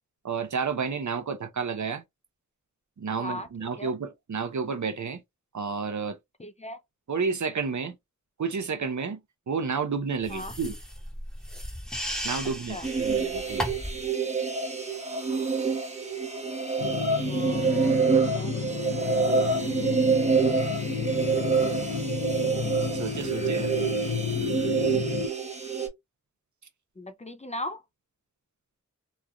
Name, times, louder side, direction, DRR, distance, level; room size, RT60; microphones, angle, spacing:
voice 1, 0.2-2.0 3.0-5.2 5.5-6.2 7.1-8.0 8.4-9.2 9.5-10.8 12.2-13.6 22.9-23.7, right 5 dB, 70° right, 0.6 m, -31 dB
voice 2, 3.2-3.5 3.8-3.9 6.4-6.8 10.3-10.5 12.7-12.9 17.2-19.3 27.0-27.8, left 1 dB, 25° left, 0.4 m, -39 dB
sound 1, 10.2-14.0, equal, ahead, 1.0 m, -35 dB
sound 2, 12.8-25.9, right 5 dB, 20° right, 0.8 m, -27 dB
sound 3, 16.8-25.3, left 5 dB, 80° left, 0.6 m, -31 dB
3.0 x 2.4 x 2.2 m
wide cardioid pair, 55°, 30 cm